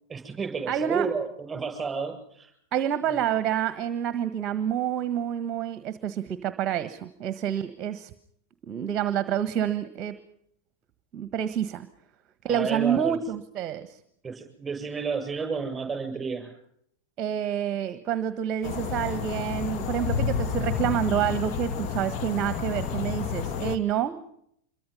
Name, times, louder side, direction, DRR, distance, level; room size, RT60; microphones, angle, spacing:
voice 1, 0.1-2.5 12.5-13.2 14.2-16.5, right 5 dB, 15° right, 5 dB, 7.7 m, -31 dB
voice 2, 0.7-1.1 2.7-8.1 8.6-10.1 11.1-11.9 12.4-14.0 17.2-24.2, right 9 dB, 30° right, 12 dB, 1.4 m, -28 dB
sound 1, 18.6-23.8, left 7 dB, 40° left, 1.8 m, -30 dB
26.5 x 23.0 x 5.6 m, 0.70 s
figure-of-eight pair, 90°, 0 cm